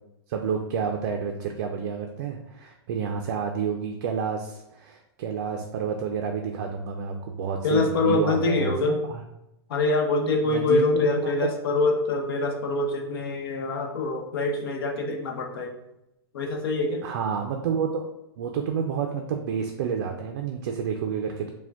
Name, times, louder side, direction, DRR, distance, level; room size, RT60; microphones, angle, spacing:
voice 1, 0.3-9.2 10.5-11.1 17.0-18.0 18.4-21.5, right 6 dB, 50° right, 3 dB, 0.4 m, -29 dB
voice 2, 7.6-9.0 9.7-15.7 16.3-17.1, left 3 dB, 65° left, 2 dB, 0.8 m, -25 dB
4.7 x 2.2 x 3.4 m, 0.86 s
supercardioid pair, 160°, 13 cm